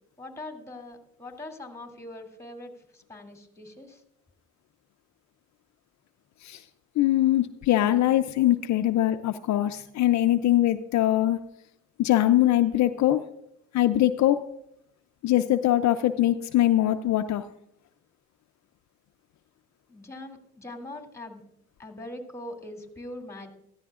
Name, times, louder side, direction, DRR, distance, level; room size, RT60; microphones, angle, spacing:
voice 1, 0.2-4.0 19.9-21.4 21.8-23.5, left 1 dB, 10° left, 2 dB, 2.6 m, -42 dB
voice 2, 7.0-11.4 12.0-13.3 13.7-14.4 15.2-17.4, left 13 dB, 65° left, 9 dB, 0.5 m, -22 dB
15.0 x 13.5 x 2.4 m, 0.80 s
cardioid pair, 90°, 30 cm